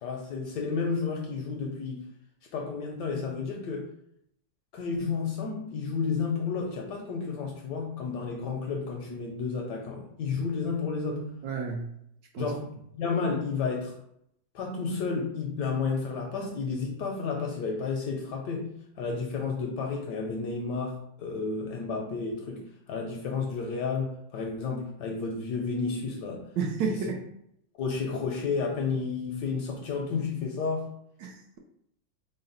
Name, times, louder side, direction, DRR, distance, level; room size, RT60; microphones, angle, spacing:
voice 1, 0.0-2.0 2.5-3.9 4.7-11.4 12.4-13.9 14.5-26.5 26.9-27.0 27.8-30.9, left 4 dB, 70° left, 1 dB, 1.0 m, -31 dB
voice 2, 11.4-11.9 12.3-12.5 26.6-27.2 31.2-31.6, right 5 dB, 70° right, 1 dB, 1.2 m, -31 dB
4.1 x 2.1 x 3.8 m, 0.73 s
omnidirectional pair, 2.2 m